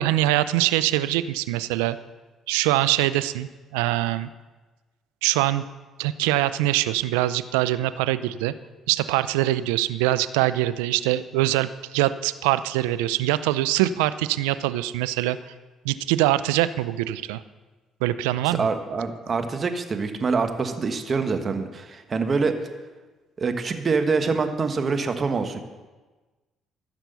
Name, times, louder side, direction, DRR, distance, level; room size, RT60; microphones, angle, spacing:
voice 1, 0.0-2.0 2.5-4.3 5.2-5.6 6.0-8.5 8.9-15.4 15.8-17.4 18.0-18.7, right 15 dB, 90° right, 14 dB, 0.4 m, -23 dB
voice 2, 18.5-22.6 23.4-25.6, right 4 dB, 40° right, 7 dB, 1.4 m, -25 dB
14.5 x 6.0 x 6.9 m, 1.3 s
supercardioid pair, 60°, 0 cm